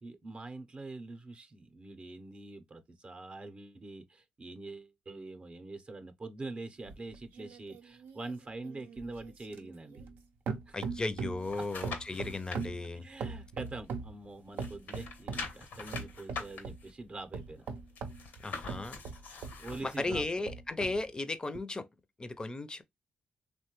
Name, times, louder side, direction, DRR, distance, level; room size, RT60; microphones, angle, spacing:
voice 1, 0.0-10.0 10.7-10.8 11.6-11.7 12.9-17.7 19.2-20.5, right 2 dB, 40° right, 0.6 m, -45 dB
sound 1, 6.9-10.2 10.5-11.5 11.8-14.2 14.6-15.5 15.9-16.8 17.3-19.6 20.1-21.0 21.6-21.7, right 5 dB, 85° right, 0.5 m, -40 dB
voice 2, 10.7-13.0 18.4-19.0 19.8-21.9 22.2-22.8, left 2 dB, 25° left, 0.5 m, -35 dB
sound 2, 11.1-12.7 13.1-14.2 14.5-20.1 20.5-20.6, left 4 dB, 80° left, 0.8 m, -44 dB
3.1 x 2.1 x 2.9 m
cardioid pair, 65°, 3 cm